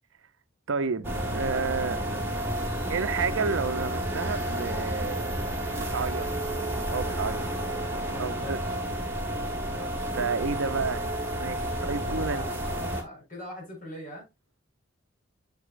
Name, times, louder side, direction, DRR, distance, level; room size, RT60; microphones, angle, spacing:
voice 1, 0.7-2.0 2.9-5.3 5.7-6.2 6.5-7.5 8.2-8.6 10.2-11.1 11.4-12.4, right 5 dB, 75° right, 0.6 m, -31 dB
sound 1, 1.0-13.0, right 1 dB, 10° right, 1.8 m, -31 dB
voice 2, 8.1-8.6 9.6-10.1 11.7-14.3, left 1 dB, 40° left, 5.3 m, -42 dB
8.1 x 6.7 x 2.5 m
head